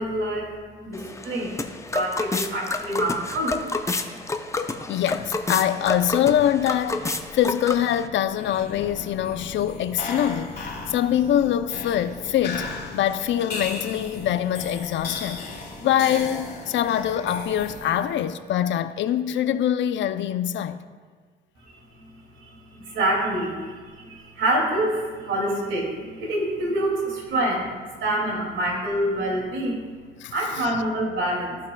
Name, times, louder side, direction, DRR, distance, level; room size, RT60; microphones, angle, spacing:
voice 1, 0.0-1.6 1.9-3.6 4.0-4.2 4.8-4.9 10.9-11.0 15.2-15.3 15.7-15.9 21.6-29.8 30.3-31.6, right 1 dB, 80° right, 2.3 m, -27 dB
sound 1, 0.9-8.1, left 3 dB, 15° left, 0.5 m, -30 dB
voice 2, 4.9-15.4 15.8-20.8 30.2-30.7, left 10 dB, 70° left, 0.5 m, -24 dB
sound 2, 8.3-18.2, left 3 dB, 50° left, 2.3 m, -36 dB
15.0 x 5.7 x 2.2 m
cardioid pair, 90°, 20 cm